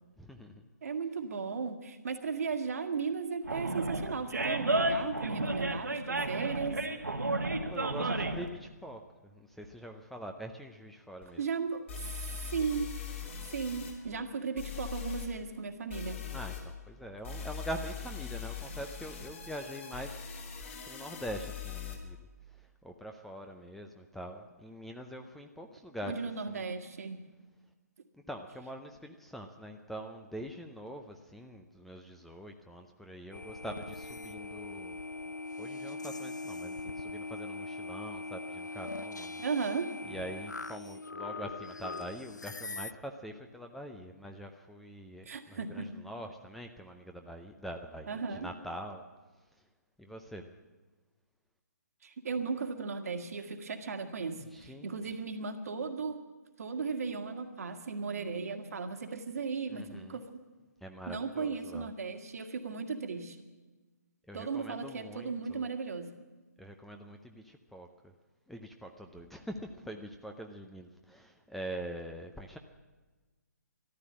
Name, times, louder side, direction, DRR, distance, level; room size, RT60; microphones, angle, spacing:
voice 1, 0.2-0.6 7.7-11.4 16.3-20.2 20.9-22.2 22.5-26.6 28.1-35.0 35.6-39.4 40.0-49.0 50.0-50.5 54.5-55.2 59.7-60.2 60.8-61.9 64.3-65.7 66.6-68.1 68.5-72.6, equal, ahead, 4 dB, 0.6 m, -44 dB
voice 2, 0.8-6.8 11.4-11.8 12.1-12.9 13.5-16.2 26.1-27.2 39.4-39.9 45.2-45.9 48.1-48.5 52.0-54.4 54.6-56.2 56.6-60.2 61.1-63.4 64.3-66.1, right 5 dB, 60° right, 6 dB, 1.7 m, -36 dB
Animal, 3.4-8.5, right 2 dB, 85° right, 1.7 m, -32 dB
sound 1, 11.2-11.3 11.9-13.9 14.6-15.3 15.9-16.6 17.2-21.9, left 7 dB, 45° left, 3.2 m, -41 dB
sound 2, 33.3-42.9, left 3 dB, 90° left, 0.5 m, -41 dB
14.0 x 12.0 x 8.6 m, 1.3 s
figure-of-eight pair, 140°, 9 cm